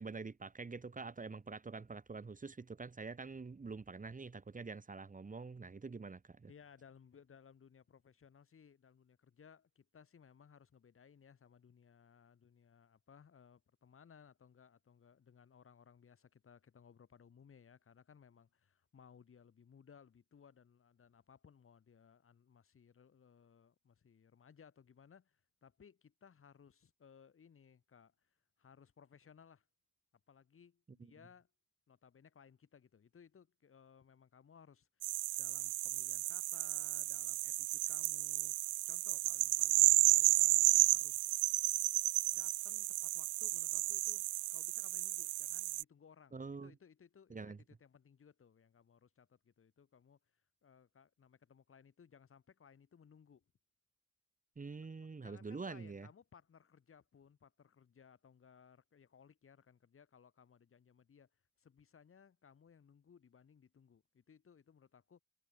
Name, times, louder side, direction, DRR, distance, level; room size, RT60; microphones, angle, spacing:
voice 1, 0.0-6.5 46.3-46.7 47.3-47.6 54.6-56.1, right 4 dB, 25° right, 2.6 m, -46 dB
voice 2, 6.5-28.3 28.6-29.6 30.3-31.5 31.9-35.1 35.4-38.6 38.9-41.6 42.3-50.2 50.6-53.4 54.8-61.3 61.6-65.2, left 7 dB, 45° left, 4.5 m, -62 dB
sound 1, 35.0-45.8, right 20 dB, 85° right, 0.5 m, -32 dB
cardioid pair, 90°, 30 cm